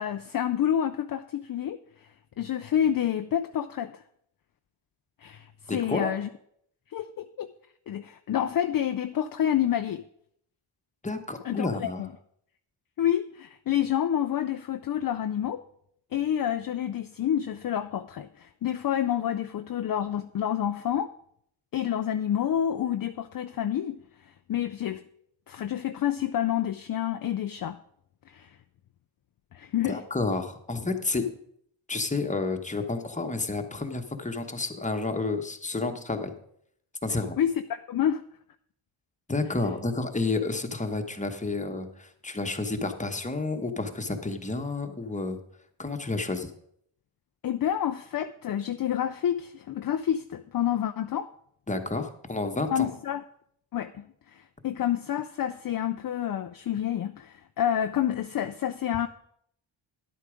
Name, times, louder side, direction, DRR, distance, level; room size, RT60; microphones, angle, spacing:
voice 1, 0.0-1.8 2.4-4.0 5.2-6.3 6.9-7.5 7.9-10.0 11.4-12.1 13.0-15.6 16.1-21.1 21.7-25.0 25.5-27.8 28.3-28.5 29.5-30.0 37.4-38.2 47.4-51.3 52.7-53.2 53.7-59.1, left 10 dB, 45° left, 0.5 m, -28 dB
voice 2, 5.7-6.1 11.0-12.0 29.8-31.3 31.9-36.3 37.0-37.4 39.3-45.4 45.8-46.5 51.7-52.9, left 3 dB, 15° left, 1.1 m, -30 dB
10.5 x 8.4 x 5.1 m
cardioid pair, 75°, 48 cm